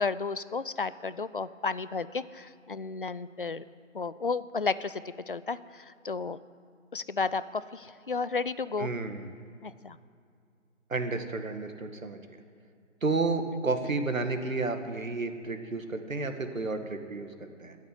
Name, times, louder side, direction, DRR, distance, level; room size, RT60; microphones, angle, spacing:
voice 1, 0.0-3.6 3.9-6.4 6.9-8.9 9.6-10.0, left 4 dB, 45° left, 16 dB, 0.5 m, -33 dB
voice 2, 8.8-9.3 10.9-12.4 13.0-17.8, right 3 dB, 85° right, 6 dB, 2.0 m, -31 dB
13.5 x 9.5 x 9.7 m, 2.3 s
figure-of-eight pair, 165°, 39 cm